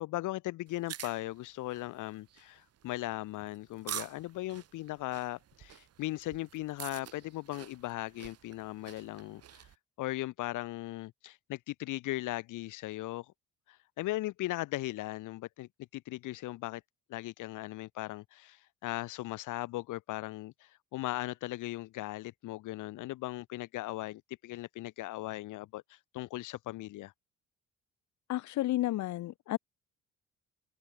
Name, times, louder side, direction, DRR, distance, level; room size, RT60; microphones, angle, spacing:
voice 1, 0.0-9.7 10.0-13.3 13.7-16.8 17.1-27.1, left 17 dB, 85° left, 1.0 m, -38 dB
sound 1, 0.7-9.8, right 10 dB, 55° right, 1.1 m, -47 dB
voice 2, 28.3-29.6, left 15 dB, 70° left, 0.6 m, -31 dB
cardioid pair, 90°, 30 cm